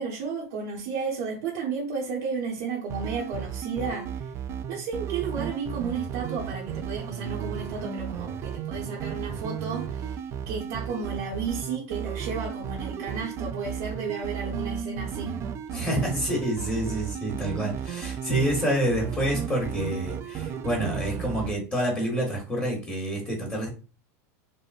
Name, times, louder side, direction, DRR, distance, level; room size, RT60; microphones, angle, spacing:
voice 1, 0.0-4.3 4.7-15.4, right 5 dB, 70° right, 1.0 m, -33 dB
sound 1, 2.9-21.5, right 8 dB, 35° right, 0.3 m, -34 dB
voice 2, 15.7-23.7, right 1 dB, 20° left, 1.2 m, -28 dB
3.6 x 2.0 x 2.4 m
supercardioid pair, 115°, 8 cm